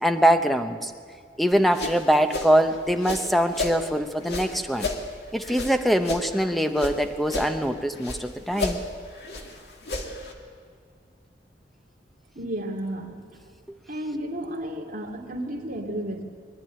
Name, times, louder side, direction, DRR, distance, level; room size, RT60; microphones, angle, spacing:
voice 1, 0.0-0.9 1.4-4.9 5.3-8.8, equal, ahead, 7 dB, 0.8 m, -23 dB
sound 1, 1.5-3.8 4.2-7.0 7.2-8.2 8.5-10.3, left 2 dB, 60° left, 2.3 m, -33 dB
voice 2, 12.4-13.2 13.9-16.2, right 1 dB, 45° right, -1 dB, 2.5 m, -32 dB
23.0 x 12.0 x 9.9 m, 2.1 s
head